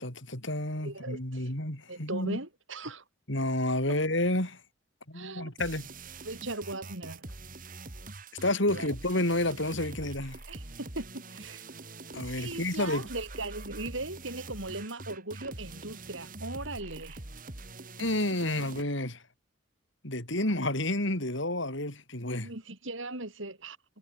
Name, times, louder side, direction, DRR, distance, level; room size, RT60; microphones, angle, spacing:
voice 1, 0.0-2.4 3.3-4.6 5.1-5.9 8.4-10.4 12.1-13.1 18.0-19.2 20.0-22.5, left 1 dB, 65° left, 5.8 m, -30 dB
voice 2, 0.8-1.5 1.9-3.0 3.9-4.0 5.1-5.5 6.2-7.3 8.7-8.9 10.5-11.6 12.4-17.2 22.4-23.8, right 2 dB, 70° right, 4.8 m, -38 dB
sound 1, 5.6-18.8, right 2 dB, 40° right, 3.0 m, -44 dB
head